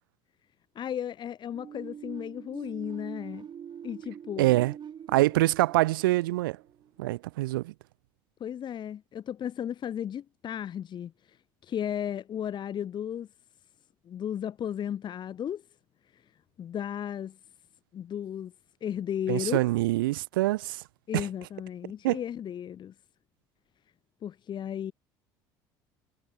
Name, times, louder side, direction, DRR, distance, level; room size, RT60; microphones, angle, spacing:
voice 1, 0.7-3.5 3.8-4.5 8.4-11.4 11.6-13.3 14.1-15.6 16.6-17.4 17.9-18.5 18.8-19.6 21.1-22.9 24.2-24.9, left 9 dB, 45° left, 1.1 m, -34 dB
sound 1, 1.5-7.2, right 8 dB, 45° right, 5.7 m, -44 dB
voice 2, 4.4-4.7 5.1-6.6 7.0-7.7 19.3-20.8 21.1-21.3 22.0-22.2, right 18 dB, 90° right, 0.7 m, -25 dB
supercardioid pair, 80°, 11 cm